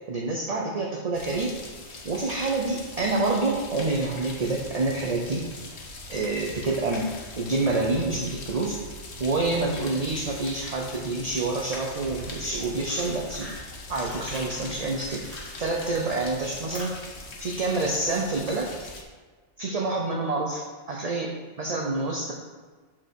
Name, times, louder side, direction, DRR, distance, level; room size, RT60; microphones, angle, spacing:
voice 1, 0.1-1.6 2.0-5.4 6.1-8.8 9.2-13.5 13.9-15.2 15.6-17.0 17.4-18.7 19.6-22.3, right 3 dB, 40° right, -1 dB, 0.7 m, -27 dB
sound 1, 1.1-19.0, left 2 dB, 70° left, 1.3 m, -41 dB
Fire, 12.2-15.9 16.2-19.0, equal, 10° right, 1.8 m, -46 dB
5.7 x 4.5 x 6.3 m, 1.4 s
omnidirectional pair, 1.2 m